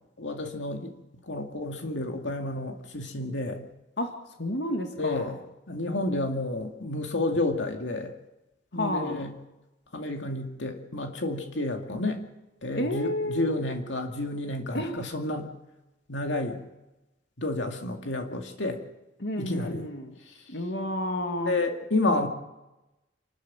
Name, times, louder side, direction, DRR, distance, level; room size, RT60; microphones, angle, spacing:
voice 1, 0.2-0.9 1.2-3.7 5.0-5.4 5.7-8.1 8.7-9.3 9.9-12.2 12.6-15.5 16.1-16.6 17.4-18.8 19.4-19.9 21.5-22.3, left 2 dB, 85° left, 4 dB, 2.3 m, -30 dB
voice 2, 4.0-5.3 8.7-9.2 12.8-13.5 14.7-15.0 19.2-20.2 20.5-21.5, left 1 dB, 65° left, 4 dB, 2.1 m, -31 dB
27.0 x 13.0 x 7.5 m, 0.99 s
head